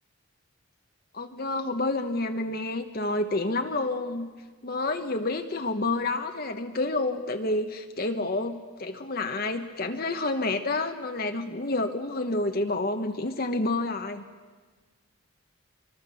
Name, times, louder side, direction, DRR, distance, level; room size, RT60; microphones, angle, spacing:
voice 1, 1.1-4.3 4.6-14.2, left 2 dB, 45° left, 5 dB, 1.1 m, -29 dB
25.0 x 24.0 x 7.0 m, 1.4 s
head